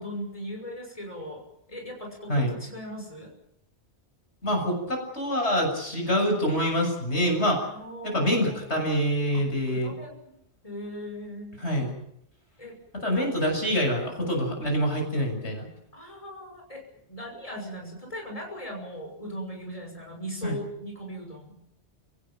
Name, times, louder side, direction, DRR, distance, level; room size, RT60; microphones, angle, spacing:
voice 1, 0.0-1.4 1.7-3.3 7.7-8.6 9.3-10.3 10.6-11.6 12.6-13.2 14.5-14.7 15.9-21.6, equal, 30° left, 1 dB, 6.4 m, -39 dB
voice 2, 4.4-7.7 8.0-9.9 11.6-11.9 13.0-15.7 20.4-20.6, equal, 75° left, 2 dB, 7.3 m, -26 dB
29.5 x 17.5 x 7.5 m, 0.76 s
omnidirectional pair, 1.2 m